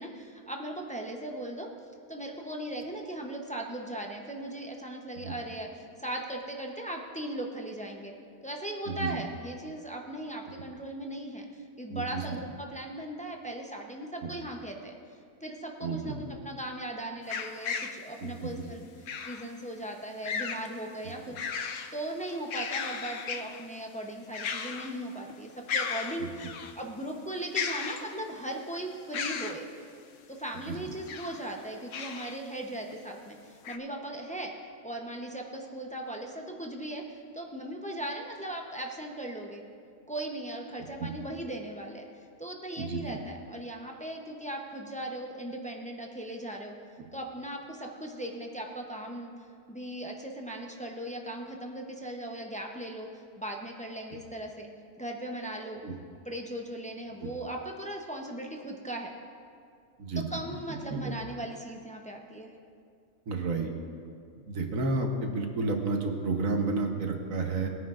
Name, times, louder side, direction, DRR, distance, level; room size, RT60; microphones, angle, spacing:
voice 1, 0.0-1.7 2.1-5.7 6.0-8.1 8.4-14.9 15.4-18.8 19.3-21.4 21.9-26.5 26.8-29.7 30.3-34.5 34.8-37.0 37.3-39.6 40.1-42.0 42.4-46.7 47.1-49.3 49.7-53.1 53.4-54.7 55.0-55.8 56.3-59.1 60.2-62.5, right 1 dB, 10° left, 1 dB, 0.5 m, -38 dB
voice 2, 8.9-9.2 11.9-12.4 14.2-14.3 15.8-16.3 18.2-18.6 21.3-21.4 26.2-26.3 30.7-30.8 41.0-41.1 42.8-43.2 55.8-55.9 57.2-57.3 60.0-60.2 60.9-61.1 63.3-63.7 64.5-67.7, right 3 dB, 70° right, 3 dB, 1.5 m, -31 dB
sound 1, 17.3-18.0 19.1-19.5 20.2-20.7 21.1-21.9 22.3-23.6 24.3-25.0 25.3-25.4 25.7-26.7 27.5-28.4 29.1-29.6 30.9-31.4 31.9-32.4 32.9-33.0 33.6-33.8, left 6 dB, 70° left, 1.0 m, -35 dB
20.0 x 9.5 x 2.5 m, 2.3 s
omnidirectional pair, 1.5 m